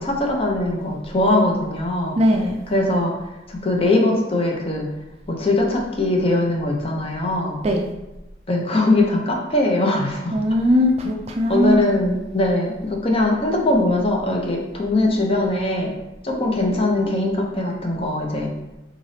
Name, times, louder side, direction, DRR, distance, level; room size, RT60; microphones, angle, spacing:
voice 1, 0.0-2.2 2.7-3.1 3.5-4.9 5.3-7.6 8.5-10.3 11.5-15.9 16.2-18.5, left 2 dB, 30° left, 0 dB, 0.6 m, -21 dB
voice 2, 2.2-2.6 7.6-7.8 10.3-11.9, equal, 35° right, 3 dB, 0.3 m, -19 dB
3.8 x 3.2 x 2.7 m, 0.97 s
head